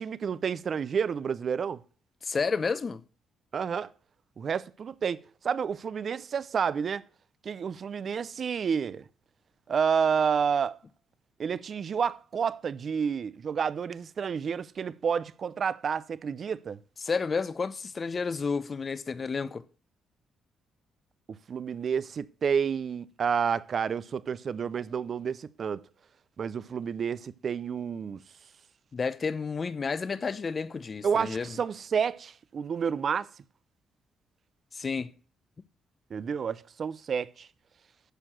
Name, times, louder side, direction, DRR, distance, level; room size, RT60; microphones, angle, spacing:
voice 1, 0.0-1.8 3.5-3.9 4.4-5.2 5.4-7.0 7.4-9.1 9.7-10.8 11.4-16.8 21.3-25.8 26.4-28.2 31.0-33.3 36.1-37.5, right 6 dB, 50° right, 0.5 m, -30 dB
voice 2, 2.2-3.0 17.0-19.6 28.9-31.6 34.7-35.1, left 5 dB, 35° left, 0.7 m, -31 dB
11.5 x 4.6 x 6.4 m
cardioid pair, 90°, 0 cm